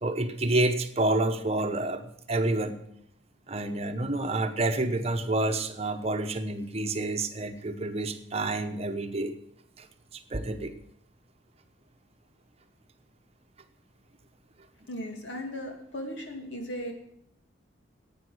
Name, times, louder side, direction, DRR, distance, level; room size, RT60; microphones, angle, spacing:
voice 1, 0.0-2.8 3.5-9.4 9.8-9.9 10.1-10.7, right 2 dB, 35° right, 8 dB, 0.9 m, -28 dB
voice 2, 14.9-16.9, equal, 75° left, 2 dB, 2.6 m, -37 dB
11.0 x 8.8 x 7.9 m, 0.75 s
head